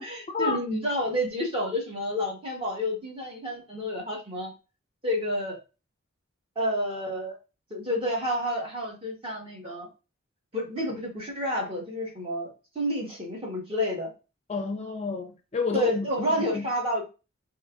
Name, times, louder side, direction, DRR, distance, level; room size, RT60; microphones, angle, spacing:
voice 1, 0.0-4.5 5.0-5.6 6.5-7.4 7.7-9.9 10.5-14.1 15.7-17.0, equal, 25° right, 1.3 m, -29 dB
voice 2, 14.5-16.7, left 4 dB, 30° left, 0.4 m, -30 dB
5.2 x 2.9 x 2.4 m
head